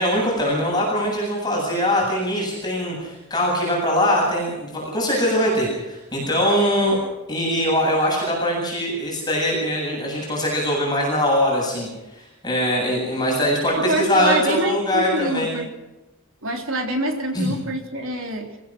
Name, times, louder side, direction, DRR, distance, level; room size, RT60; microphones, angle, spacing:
voice 1, 0.0-7.0 7.3-11.9 12.1-15.6 17.3-17.5, equal, 20° left, -3 dB, 8.0 m, -22 dB
voice 2, 13.7-15.7 16.4-18.6, right 1 dB, 65° right, 4 dB, 3.7 m, -26 dB
26.0 x 16.0 x 6.2 m, 0.99 s
head